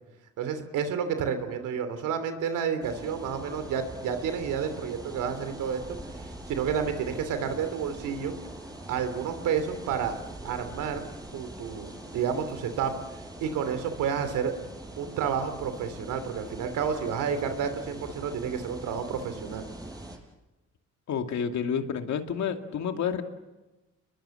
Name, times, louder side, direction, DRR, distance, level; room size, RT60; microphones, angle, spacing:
voice 1, 0.4-6.0 6.5-8.3 8.9-10.2 10.4-11.0 11.3-12.9 13.4-14.5 15.0-19.6, right 7 dB, 85° right, 9 dB, 3.1 m, -30 dB
sound 1, 2.8-20.2, right 1 dB, 15° right, 5.6 m, -43 dB
voice 2, 21.1-23.2, left 7 dB, 65° left, 5 dB, 2.5 m, -29 dB
30.0 x 22.0 x 7.8 m, 1.1 s
cardioid pair, 90°, 30 cm